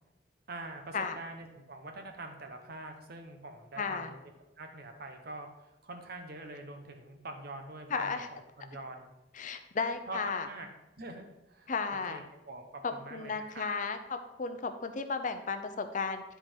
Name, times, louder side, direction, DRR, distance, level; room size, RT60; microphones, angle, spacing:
voice 1, 0.5-4.2 4.6-9.1 10.1-10.7 11.0-11.7 12.1-13.8, right 2 dB, 55° right, 5 dB, 1.0 m, -45 dB
voice 2, 3.8-4.1 7.9-8.3 9.3-10.5 11.7-12.2 12.8-16.2, left 4 dB, 45° left, 7 dB, 0.7 m, -34 dB
10.0 x 4.6 x 4.5 m, 0.94 s
head